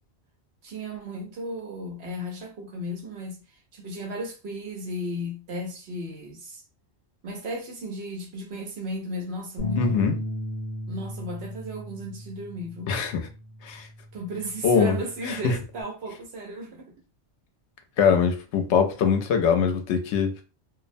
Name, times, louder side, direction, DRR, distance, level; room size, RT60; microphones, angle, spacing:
voice 1, 0.6-3.4 3.7-6.6 7.2-10.1 10.9-12.9 14.1-16.9, equal, 70° right, 1.0 m, -34 dB
sound 1, 9.6-15.8, equal, 55° left, 0.9 m, -36 dB
voice 2, 9.8-10.2 12.9-13.3 13.6-13.9 14.6-14.9 15.3-15.6 18.0-20.4, left 6 dB, 85° left, 0.9 m, -22 dB
2.5 x 2.0 x 2.5 m
omnidirectional pair, 1.1 m